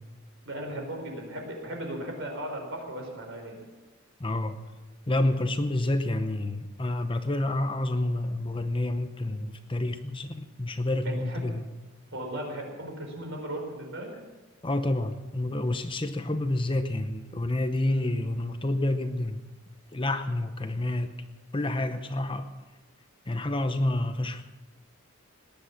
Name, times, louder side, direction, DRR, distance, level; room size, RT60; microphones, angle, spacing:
voice 1, 0.4-3.6 11.0-11.4 12.1-14.1 17.8-18.2, right 1 dB, 60° right, 2 dB, 4.7 m, -37 dB
voice 2, 4.2-4.6 5.1-11.7 14.6-19.4 19.9-21.1 21.5-22.5 23.3-24.4, left 1 dB, 25° left, 9 dB, 0.8 m, -29 dB
18.5 x 10.5 x 7.3 m, 1.2 s
head